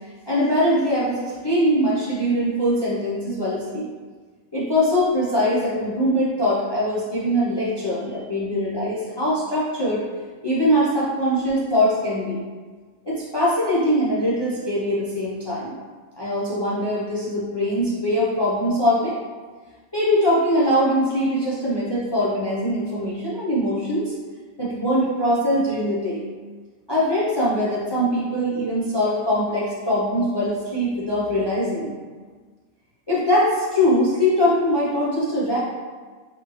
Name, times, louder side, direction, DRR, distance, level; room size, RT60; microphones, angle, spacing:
voice 1, 0.3-3.9 4.5-10.1 10.4-12.4 13.0-15.8 16.2-19.2 19.9-24.1 24.6-26.2 26.9-31.9 33.1-35.6, equal, 40° left, -8 dB, 0.4 m, -22 dB
4.0 x 3.0 x 3.1 m, 1.4 s
omnidirectional pair, 1.5 m